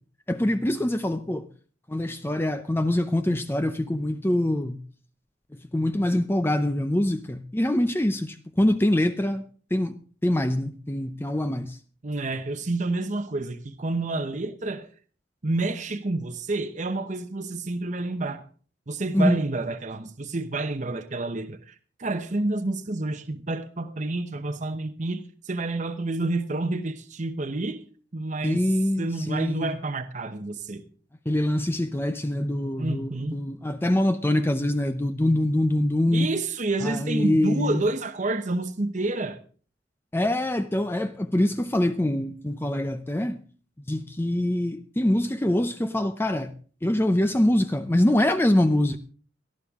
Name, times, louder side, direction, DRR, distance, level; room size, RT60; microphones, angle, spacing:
voice 1, 0.3-1.5 1.9-4.8 5.5-9.5 9.7-9.9 10.2-11.8 19.1-19.4 28.4-29.8 31.3-36.3 36.8-37.8 40.1-43.4 43.9-46.5 46.8-49.0, left 1 dB, 10° left, 0.6 m, -24 dB
voice 2, 12.0-14.9 15.4-18.4 18.9-27.8 28.1-28.7 29.0-30.8 32.8-33.4 36.1-39.4, right 2 dB, 40° right, 0.9 m, -29 dB
18.5 x 12.5 x 3.6 m
head